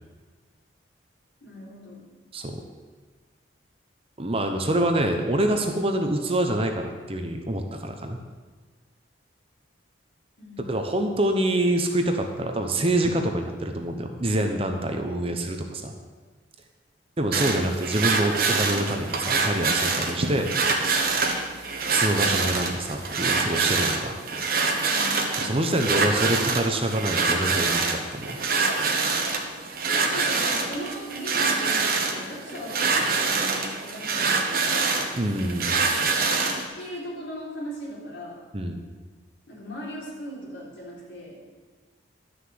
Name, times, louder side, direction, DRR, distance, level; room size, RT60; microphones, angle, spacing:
voice 1, 1.4-2.1 10.4-10.8 24.9-25.2 30.1-35.0 36.7-38.4 39.5-41.4, equal, 60° left, -5 dB, 3.8 m, -38 dB
voice 2, 4.2-8.2 10.6-15.9 17.2-20.5 21.8-24.1 25.4-28.4 35.1-35.7 38.5-38.8, right 1 dB, 30° right, 4 dB, 0.9 m, -26 dB
sound 1, 17.3-36.7, right 4 dB, 50° right, 1.3 m, -25 dB
11.5 x 6.6 x 7.7 m, 1.4 s
head